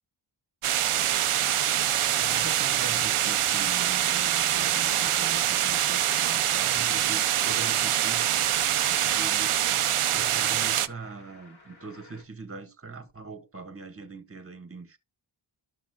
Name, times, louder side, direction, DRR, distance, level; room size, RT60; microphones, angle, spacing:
sound 1, 0.6-10.9, right 11 dB, 80° right, 0.6 m, -25 dB
voice 1, 2.1-8.3 8.9-15.0, right 3 dB, 25° right, 1.5 m, -42 dB
sound 2, 4.5-12.2, left 2 dB, 70° left, 3.1 m, -51 dB
13.0 x 6.1 x 2.4 m
wide cardioid pair, 65°, 50 cm